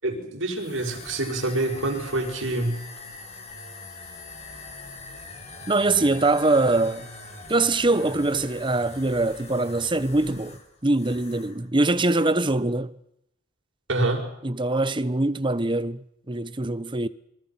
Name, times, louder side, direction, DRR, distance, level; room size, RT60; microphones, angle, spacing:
voice 1, 0.0-2.8 13.9-14.3, right 2 dB, 65° right, 6.5 m, -26 dB
sound 1, 0.6-11.6 11.8-12.3, left 3 dB, 35° left, 4.3 m, -42 dB
voice 2, 5.7-7.1 7.5-10.6 10.8-12.9 14.4-17.1, right 2 dB, 25° right, 1.0 m, -23 dB
26.5 x 24.0 x 6.0 m
head